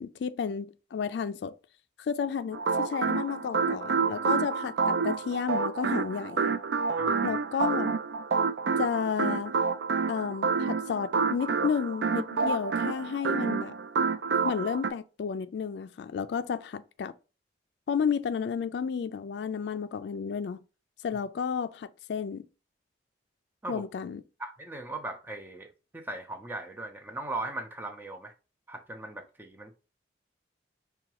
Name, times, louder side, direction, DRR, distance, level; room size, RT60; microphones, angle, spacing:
voice 1, 0.0-1.5 2.0-6.5 7.2-8.0 8.8-9.5 10.1-13.7 14.4-17.1 17.9-20.6 21.0-22.4 23.7-24.2, left 6 dB, 70° left, 0.3 m, -32 dB
sound 1, 2.5-14.9, right 5 dB, 75° right, 0.4 m, -28 dB
voice 2, 24.4-28.3 28.7-29.7, right 2 dB, 10° right, 0.5 m, -38 dB
5.6 x 2.3 x 2.8 m
head